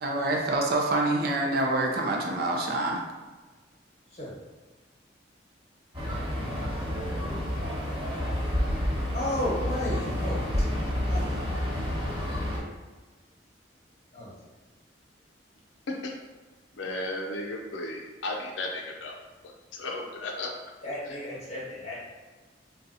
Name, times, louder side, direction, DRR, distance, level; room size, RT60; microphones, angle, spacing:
voice 1, 0.0-3.0, right 2 dB, 55° right, 0 dB, 0.5 m, -26 dB
sound 1, 5.9-12.6, left 1 dB, 30° right, 1.5 m, -29 dB
voice 2, 9.1-10.4 11.1-11.6 14.1-14.3 20.8-22.0, left 1 dB, 35° left, -6 dB, 1.1 m, -33 dB
voice 3, 16.7-19.2 19.7-20.5 21.1-21.2, left 2 dB, 85° left, 1 dB, 0.5 m, -34 dB
3.9 x 2.3 x 2.6 m, 1.3 s
head